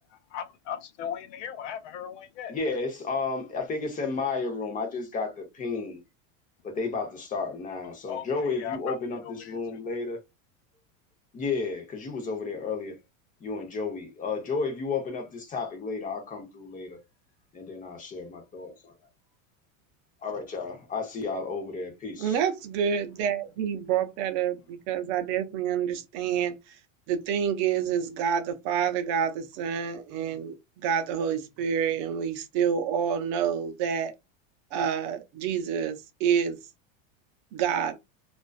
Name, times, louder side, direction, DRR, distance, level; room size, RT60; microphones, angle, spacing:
voice 1, 0.3-2.6 8.1-8.2 8.6-9.0 9.5-9.6, left 9 dB, 65° left, 0.6 m, -36 dB
voice 2, 2.5-6.0 6.6-10.2 11.3-13.0 13.4-17.0 17.6-18.7 20.2-22.4, left 4 dB, 20° left, 0.7 m, -32 dB
voice 3, 22.2-26.7 27.1-30.6 30.8-34.1 34.7-36.6 37.5-38.0, right 8 dB, 50° right, 0.6 m, -28 dB
2.4 x 2.2 x 2.2 m
supercardioid pair, 145°, 40 cm